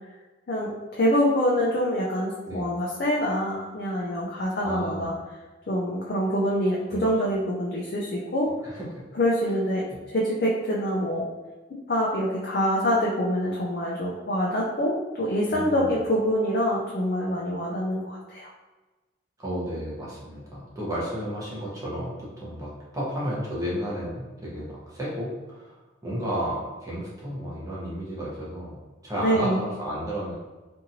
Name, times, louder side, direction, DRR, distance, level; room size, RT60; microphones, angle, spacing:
voice 1, 0.5-5.1 5.7-8.5 9.1-11.3 11.9-18.5 29.2-29.6, equal, 50° left, -5 dB, 0.4 m, -25 dB
voice 2, 4.6-5.1 6.9-7.0 8.6-8.9 15.5-15.9 19.4-30.3, equal, 15° right, -7 dB, 0.8 m, -32 dB
2.9 x 2.6 x 2.6 m, 1.2 s
head